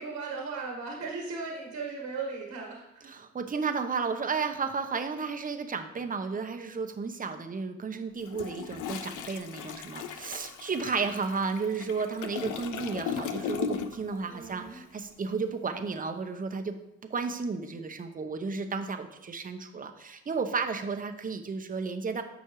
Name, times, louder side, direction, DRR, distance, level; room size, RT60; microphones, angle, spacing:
voice 1, 0.0-3.1 14.3-14.8, right 4 dB, 60° right, -1 dB, 1.6 m, -37 dB
voice 2, 3.1-16.8 17.1-22.2, right 5 dB, 30° right, 7 dB, 0.8 m, -33 dB
Toilet flush, 8.2-14.2 14.4-14.7, left 7 dB, 80° left, 0.6 m, -37 dB
10.5 x 6.3 x 3.1 m, 0.86 s
cardioid pair, 90°, 30 cm